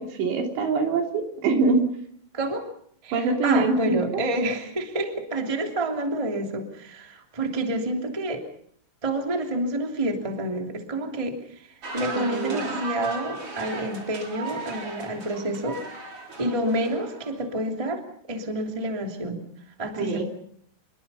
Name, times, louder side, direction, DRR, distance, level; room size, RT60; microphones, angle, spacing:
voice 1, 0.0-1.9 3.1-4.0 12.2-12.8 20.0-20.2, right 3 dB, 65° right, 2 dB, 5.3 m, -24 dB
voice 2, 2.3-2.7 3.0-8.4 9.0-15.8 16.4-18.0 18.3-19.4 19.8-20.2, right 1 dB, 10° right, 3 dB, 1.9 m, -28 dB
sound 1, 11.8-17.5, right 3 dB, 30° right, 4.2 m, -36 dB
26.5 x 22.5 x 5.6 m, 0.64 s
omnidirectional pair, 5.4 m